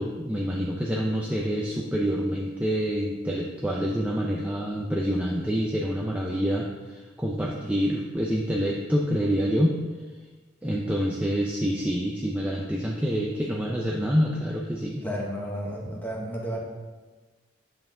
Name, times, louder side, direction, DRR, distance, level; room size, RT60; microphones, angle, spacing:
voice 1, 0.0-9.8 10.6-15.0, equal, 5° right, -3 dB, 0.7 m, -27 dB
voice 2, 15.0-16.6, equal, 10° left, -2 dB, 1.6 m, -32 dB
9.7 x 7.9 x 3.8 m, 1.3 s
head